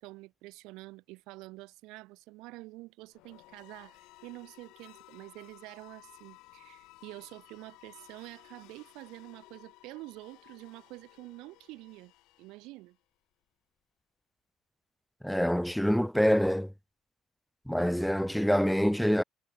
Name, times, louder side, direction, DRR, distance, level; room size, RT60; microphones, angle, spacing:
voice 1, 0.0-12.1 12.4-13.0, right 21 dB, 85° right, 1.0 m, -47 dB
sound 1, 3.1-13.0, left 21 dB, 85° left, 6.3 m, -57 dB
voice 2, 15.2-16.7 17.7-19.2, equal, ahead, 0.4 m, -26 dB
cardioid pair, 95°, 0 cm